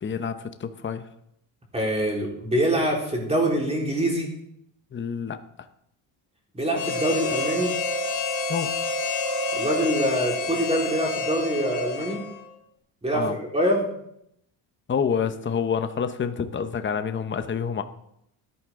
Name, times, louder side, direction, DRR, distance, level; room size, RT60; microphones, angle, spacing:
voice 1, 0.0-1.1 4.9-5.4 8.5-8.7 13.1-13.4 14.9-17.8, left 7 dB, 25° left, 9 dB, 0.8 m, -28 dB
voice 2, 1.7-4.3 6.5-7.7 9.5-12.2 13.0-13.9, right 1 dB, 15° right, -1 dB, 3.8 m, -24 dB
Harmonica, 6.7-12.5, left 3 dB, 75° left, 2.6 m, -28 dB
13.5 x 11.0 x 3.7 m, 0.76 s
cardioid pair, 105°, 46 cm